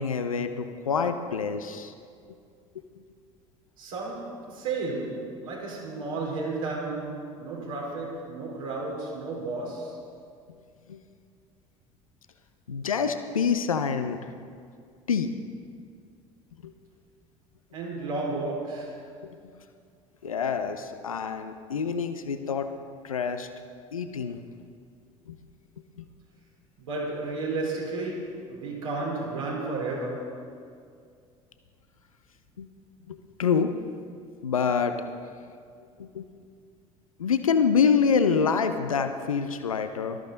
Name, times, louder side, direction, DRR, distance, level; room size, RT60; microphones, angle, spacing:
voice 1, 0.0-1.9 10.9-11.0 12.7-14.2 15.1-15.3 16.6-16.7 20.2-22.7 23.0-23.5 23.9-24.4 25.3-25.4 32.6-32.7 33.1-33.7 34.4-35.0 36.0-36.2 37.2-40.2, left 6 dB, 85° left, 8 dB, 0.7 m, -26 dB
voice 2, 3.8-10.1 17.7-19.1 26.8-30.5, right 3 dB, 75° right, -3 dB, 3.7 m, -33 dB
18.5 x 13.5 x 3.9 m, 2.3 s
figure-of-eight pair, 65°, 17 cm